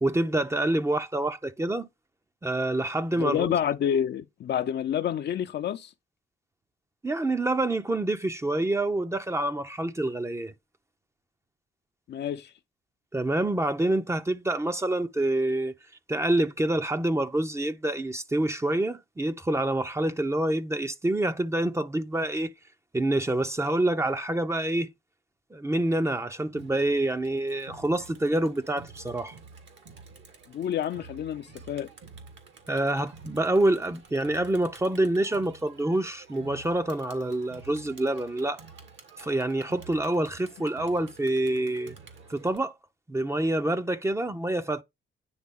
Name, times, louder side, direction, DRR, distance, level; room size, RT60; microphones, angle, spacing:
voice 1, 0.0-1.9 2.4-3.6 7.0-10.5 13.1-15.7 16.1-22.5 22.9-24.9 25.5-29.3 32.7-38.6 39.2-41.9 42.3-42.8 43.1-44.8, right 1 dB, 15° right, 0.7 m, -27 dB
voice 2, 3.1-5.9 12.1-12.5 30.5-31.9, left 9 dB, 60° left, 0.7 m, -28 dB
Crowd, 26.5-42.6, right 4 dB, 70° right, 2.1 m, -50 dB
9.6 x 3.4 x 3.7 m
cardioid pair, 90°, 20 cm